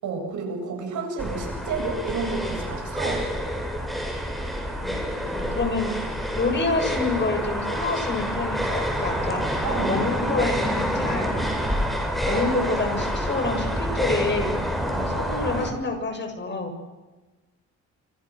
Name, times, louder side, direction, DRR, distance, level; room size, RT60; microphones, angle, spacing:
voice 1, 0.0-3.2 9.6-9.9, right 4 dB, 80° right, 2 dB, 7.9 m, -30 dB
sound 1, 1.2-15.7, equal, ahead, 7.4 m, -27 dB
voice 2, 5.3-5.9 6.3-11.3 11.9-14.5 14.9-16.7, left 3 dB, 35° left, 5 dB, 7.6 m, -28 dB
28.5 x 26.5 x 6.5 m, 1.2 s
cardioid pair, 90°, 30 cm